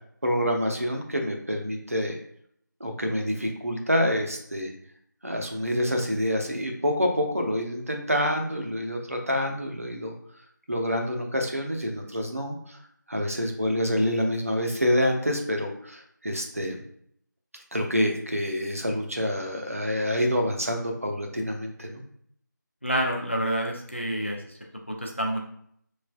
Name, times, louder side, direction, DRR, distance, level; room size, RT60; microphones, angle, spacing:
voice 1, 0.2-2.2 2.8-4.7 5.2-10.1 10.7-12.8 13.1-16.8 17.7-22.0, equal, 45° right, 3 dB, 0.7 m, -27 dB
voice 2, 22.8-24.5 24.9-25.4, equal, 35° left, 0 dB, 0.4 m, -28 dB
5.2 x 3.2 x 2.3 m, 0.67 s
figure-of-eight pair, 175°, 11 cm